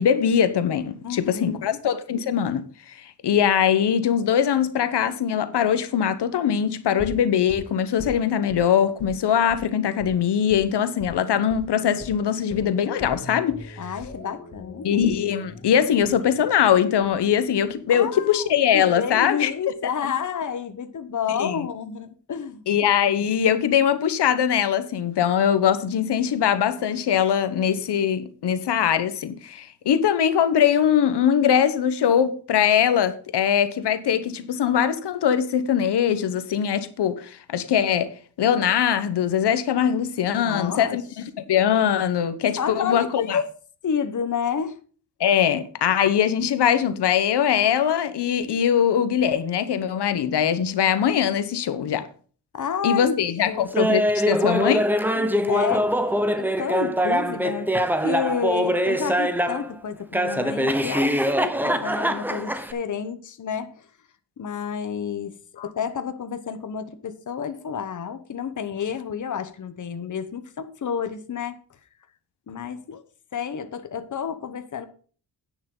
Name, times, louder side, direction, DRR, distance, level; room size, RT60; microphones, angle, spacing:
voice 1, 0.0-13.8 14.8-19.5 21.4-21.6 22.7-38.1 38.4-41.0 41.5-43.4 45.2-52.1 52.8-54.8 65.6-65.7, left 8 dB, 90° left, 1.0 m, -22 dB
voice 2, 1.0-1.8 13.8-15.0 17.9-22.8 40.3-41.0 42.6-43.5 43.8-44.8 52.5-53.2 53.5-53.7 55.1-55.9 56.4-63.9 64.4-71.6 72.5-73.0 73.3-74.9, left 7 dB, 50° left, 1.0 m, -30 dB
sound 1, 7.0-8.6 9.0-9.2 9.5-9.6 10.0-10.1 10.5-10.6 11.0-11.2 11.5-11.6 12.0-18.0 18.3-18.4, left 2 dB, 30° left, 2.5 m, -41 dB
Laughter, 53.7-59.7 60.1-62.7, equal, 5° right, 1.0 m, -23 dB
10.0 x 9.5 x 3.8 m
wide cardioid pair, 140°, 40 cm